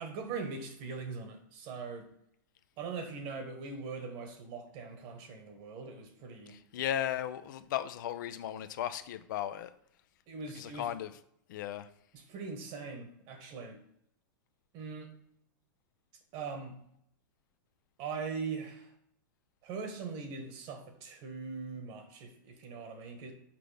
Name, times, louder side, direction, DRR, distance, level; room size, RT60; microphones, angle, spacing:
voice 1, 0.0-2.1 2.8-6.6 10.3-10.9 12.1-13.8 14.7-15.1 16.3-16.7 18.0-18.9 19.6-23.3, right 4 dB, 45° right, 6 dB, 1.4 m, -41 dB
voice 2, 6.5-9.7 10.6-11.1 11.5-11.9, left 11 dB, 65° left, 11 dB, 0.5 m, -36 dB
5.9 x 5.0 x 3.4 m, 0.70 s
hypercardioid pair, 115°, 11 cm